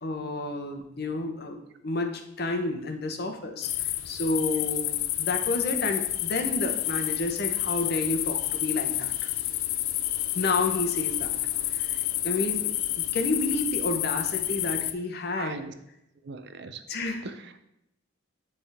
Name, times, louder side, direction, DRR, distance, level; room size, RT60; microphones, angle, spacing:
voice 1, 0.0-9.3 10.3-11.4 11.7-15.6 16.9-17.2, left 2 dB, 50° left, 5 dB, 0.8 m, -30 dB
sound 1, 3.6-14.9, left 14 dB, 85° left, 0.4 m, -29 dB
voice 2, 15.3-15.7 16.2-16.8 17.2-17.6, right 4 dB, 55° right, 10 dB, 0.5 m, -39 dB
9.9 x 3.5 x 3.5 m, 0.82 s
head